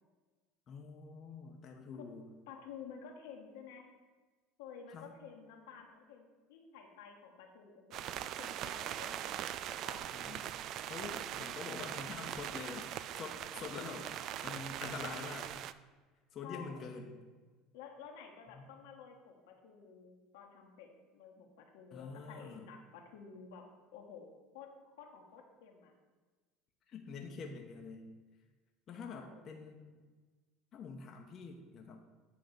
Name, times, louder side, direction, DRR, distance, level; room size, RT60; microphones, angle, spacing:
voice 1, 0.7-2.3 4.9-5.1 10.1-10.5 10.9-14.1 14.4-15.6 16.3-17.2 18.5-18.7 21.9-22.7 26.9-28.1 28.9-30.0 30.7-32.0, left 5 dB, 45° left, 2 dB, 0.9 m, -46 dB
voice 2, 2.5-3.9 4.6-10.0 16.4-17.0 17.7-20.9 21.1-23.6 23.9-24.3 24.5-25.9 29.0-29.5, left 6 dB, 75° left, 2 dB, 1.2 m, -52 dB
sound 1, 7.9-15.7, right 11 dB, 55° right, 0.3 m, -41 dB
8.7 x 3.5 x 6.5 m, 1.4 s
hypercardioid pair, 85°, 0 cm